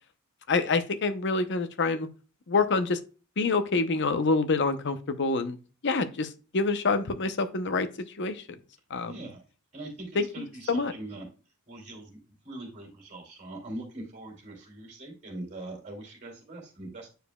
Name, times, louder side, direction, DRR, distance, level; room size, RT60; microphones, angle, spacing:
voice 1, 0.5-2.1 2.5-3.0 3.4-5.6 5.8-7.9 8.2-8.4 8.9-9.3 10.2-10.9, left 3 dB, 55° left, 11 dB, 0.7 m, -27 dB
voice 2, 9.0-9.4 9.7-10.1 10.3-11.3 11.7-12.2 12.4-17.1, right 2 dB, 35° right, -2 dB, 2.7 m, -41 dB
9.1 x 4.9 x 2.3 m, 0.35 s
head